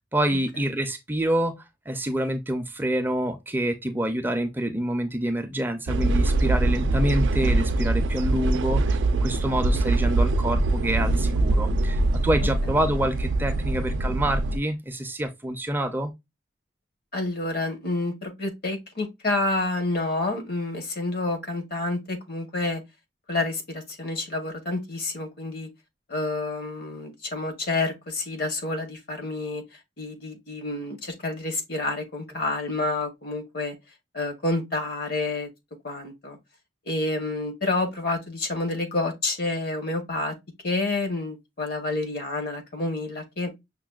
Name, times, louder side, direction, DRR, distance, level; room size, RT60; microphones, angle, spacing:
voice 1, 0.1-16.1, right 1 dB, 10° right, 0.4 m, -27 dB
sound 1, 5.9-14.6, right 2 dB, 85° right, 0.4 m, -23 dB
voice 2, 17.1-22.8 23.3-25.7 26.1-29.6 30.0-33.8 34.1-35.5 35.8-36.4 36.9-40.4 40.6-43.5, left 2 dB, 55° left, 1.0 m, -29 dB
5.8 x 2.2 x 2.2 m
head